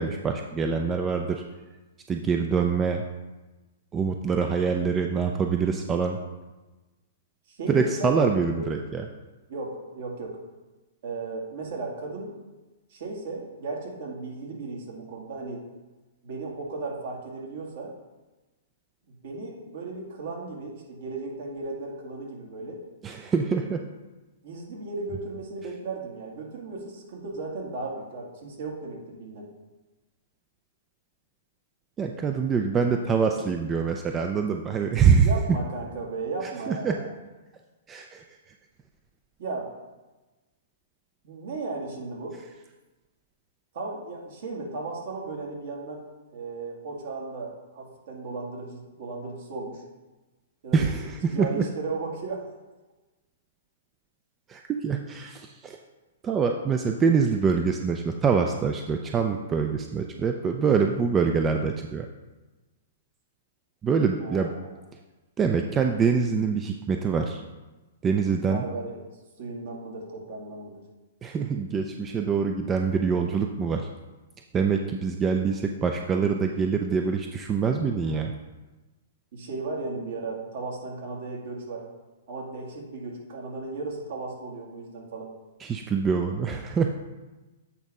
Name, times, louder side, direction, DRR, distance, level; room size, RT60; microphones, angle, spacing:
voice 1, 0.0-1.4 2.1-3.0 3.9-6.2 7.7-9.1 23.0-23.8 32.0-35.3 36.7-37.0 37.9-38.2 50.7-51.6 54.5-55.8 56.2-62.1 63.8-64.5 65.4-67.4 68.0-68.6 71.2-73.9 74.5-78.3 85.6-86.9, right 5 dB, 20° right, 4 dB, 0.5 m, -25 dB
voice 2, 7.5-8.3 8.5-8.7 9.5-10.4 11.0-12.3 12.9-15.6 16.2-17.9 19.1-22.8 24.4-29.5 35.2-37.1 39.4-39.7 41.2-42.4 43.7-49.8 50.6-52.5 64.2-64.8 68.5-68.9 69.4-70.8 79.3-81.9 82.3-85.3, right 3 dB, 60° right, -1 dB, 2.1 m, -35 dB
8.3 x 3.6 x 5.4 m, 1.1 s
hypercardioid pair, 130°, 0 cm